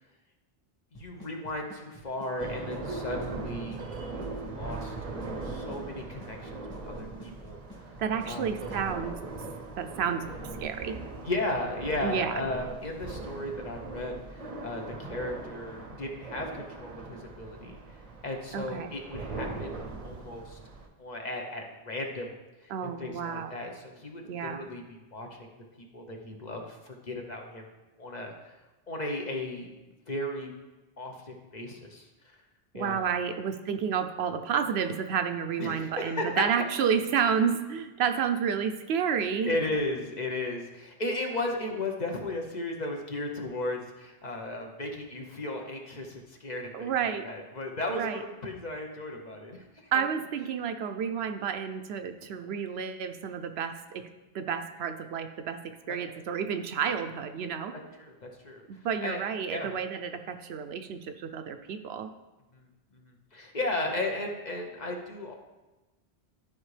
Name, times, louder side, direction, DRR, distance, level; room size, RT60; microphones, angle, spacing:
voice 1, 0.9-3.8 4.1-4.9 5.4-7.9 8.2-8.5 11.2-17.8 18.2-20.6 21.0-25.5 25.8-27.7 28.0-28.6 28.9-29.7 30.1-30.5 31.0-32.1 32.7-33.0 35.6-36.4 39.4-49.9 55.9-56.0 58.0-58.6 59.0-59.2 59.5-59.7 62.5-62.6 62.9-65.3, left 2 dB, 45° left, 2 dB, 0.9 m, -35 dB
Drum kit / Snare drum / Bass drum, 0.9-8.9, equal, 20° left, 1.7 m, -48 dB
sound 1, 2.4-20.9, right 3 dB, 40° right, 0.7 m, -40 dB
voice 2, 8.0-9.2 9.8-11.0 12.0-12.4 18.5-18.9 22.7-23.6 24.3-24.7 32.7-39.5 46.7-47.2 47.9-48.2 49.9-54.1 54.3-57.8 58.7-62.1, right 7 dB, 75° right, 8 dB, 0.8 m, -30 dB
12.0 x 4.7 x 3.3 m, 1.1 s
omnidirectional pair, 1.1 m